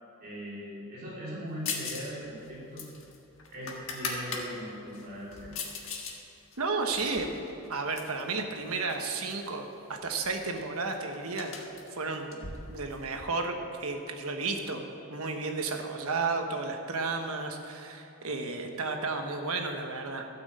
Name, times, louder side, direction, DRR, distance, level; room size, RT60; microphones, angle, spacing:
voice 1, 0.2-2.9 3.5-5.6, equal, 45° right, -7 dB, 3.2 m, -40 dB
sound 1, 1.7-2.1 2.4-4.5 4.9-6.2 6.5-8.2 8.9-9.5 9.7-9.8 10.1-13.2, left 5 dB, 60° left, 1.5 m, -39 dB
voice 2, 6.6-7.3 7.7-9.7 10.0-20.3, right 3 dB, 75° right, 4 dB, 1.2 m, -33 dB
12.5 x 6.2 x 7.7 m, 2.9 s
head